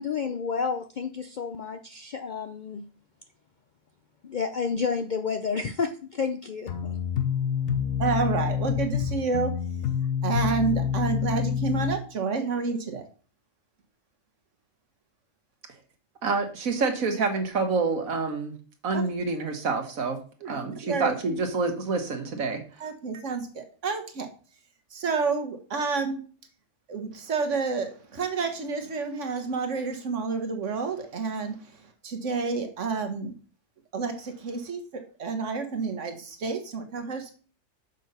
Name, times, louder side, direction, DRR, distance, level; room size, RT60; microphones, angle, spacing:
voice 1, 0.0-2.9 4.2-7.0, left 5 dB, 60° left, 8 dB, 0.5 m, -30 dB
sound 1, 6.7-12.0, left 8 dB, 80° left, 1.4 m, -27 dB
voice 2, 8.0-9.5 10.2-13.1 18.9-19.0 20.4-21.1 22.8-24.3 24.9-26.2 26.9-31.5 32.0-33.3 33.9-37.3, right 4 dB, 65° right, 6 dB, 1.6 m, -29 dB
voice 3, 16.2-18.5 18.8-20.2 20.4-22.6, right 4 dB, 85° right, 5 dB, 1.7 m, -27 dB
6.6 x 5.5 x 5.5 m, 0.40 s
omnidirectional pair, 1.4 m